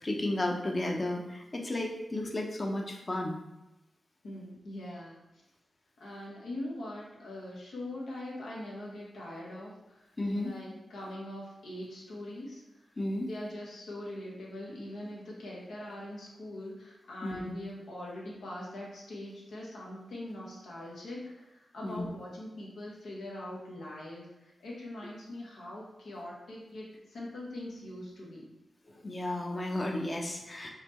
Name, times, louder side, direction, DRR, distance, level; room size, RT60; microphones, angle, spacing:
voice 1, 0.0-3.3 10.2-10.5 13.0-13.3 17.2-17.4 21.8-22.1 28.9-30.7, left 1 dB, 40° left, 1 dB, 0.7 m, -33 dB
voice 2, 4.2-5.4 6.0-12.9 13.2-28.4, left 1 dB, 85° left, -4 dB, 1.1 m, -42 dB
4.1 x 3.1 x 3.0 m, 0.97 s
cardioid pair, 55°, 0 cm